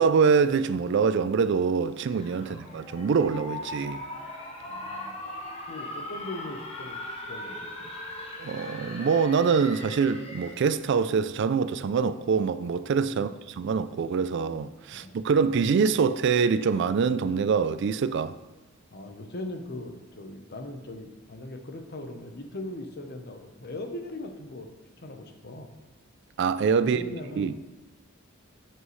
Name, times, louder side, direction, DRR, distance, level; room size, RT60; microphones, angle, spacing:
voice 1, 0.0-4.0 8.4-18.4 26.4-27.0 27.4-27.5, right 5 dB, 60° right, 0.3 m, -24 dB
sound 1, 2.0-10.8, left 1 dB, 30° left, 1.1 m, -39 dB
voice 2, 4.6-5.2 5.7-6.9 7.3-8.0 13.1-13.4 14.9-15.5 18.9-24.7 25.0-25.7 26.8-27.7, left 1 dB, 50° left, 0.9 m, -40 dB
8.0 x 7.5 x 3.2 m
head